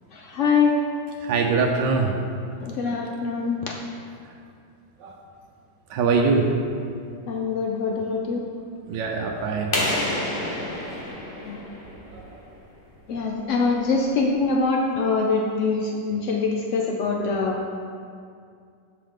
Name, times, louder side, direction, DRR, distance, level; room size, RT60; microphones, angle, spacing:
voice 1, 0.1-0.8 2.6-3.7 7.3-8.4 11.4-11.6 13.1-17.6, left 4 dB, 90° left, 0 dB, 0.6 m, -24 dB
voice 2, 1.2-2.1 2.8-2.9 5.0-5.2 5.9-6.4 8.9-9.7 12.1-12.2, right 4 dB, 75° right, 1 dB, 1.3 m, -23 dB
sound 1, 9.7-12.4, left 1 dB, 35° left, 1.2 m, -28 dB
11.0 x 4.6 x 3.6 m, 2.3 s
omnidirectional pair, 2.0 m